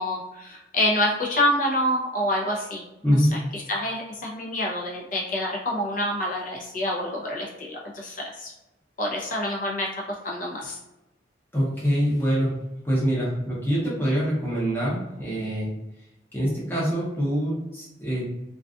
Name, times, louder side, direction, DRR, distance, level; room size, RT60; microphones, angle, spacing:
voice 1, 0.0-2.8 3.3-8.5 9.0-10.8, left 1 dB, 45° left, -3 dB, 0.6 m, -27 dB
voice 2, 3.0-3.5 11.5-12.5 12.8-15.7 16.3-18.3, equal, 10° left, -7 dB, 0.9 m, -24 dB
2.5 x 2.4 x 2.3 m, 0.95 s
head